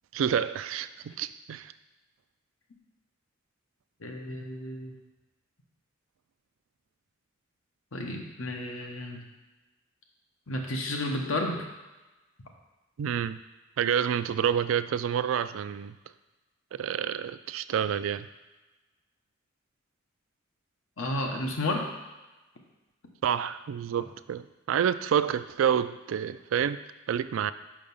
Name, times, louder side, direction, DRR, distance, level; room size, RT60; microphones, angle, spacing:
voice 1, 0.1-1.7 13.0-13.4 13.8-16.0 16.7-18.3 23.2-26.8 27.1-27.5, right 8 dB, 75° right, 14 dB, 0.3 m, -28 dB
voice 2, 4.0-5.0 7.9-9.3 10.5-11.7 21.0-21.9, left 1 dB, 85° left, 2 dB, 1.1 m, -32 dB
5.8 x 5.1 x 5.4 m, 1.1 s
head